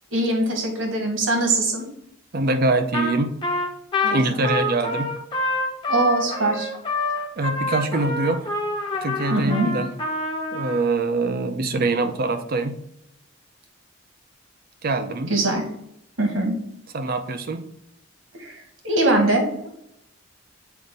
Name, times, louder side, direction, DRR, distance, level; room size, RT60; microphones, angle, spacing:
voice 1, 0.1-1.9 4.0-4.5 5.9-6.7 9.3-9.7 15.3-15.6 16.2-16.5 18.4-19.5, right 2 dB, 75° right, 3 dB, 1.6 m, -22 dB
voice 2, 2.3-3.3 4.1-5.1 7.4-8.5 9.0-9.9 10.5-12.8 14.8-15.3 16.9-17.6, right 2 dB, 50° right, 9 dB, 0.5 m, -24 dB
Trumpet, 2.9-3.2 3.4-10.8, left 2 dB, 25° left, 0.9 m, -26 dB
7.0 x 2.6 x 5.2 m, 0.76 s
head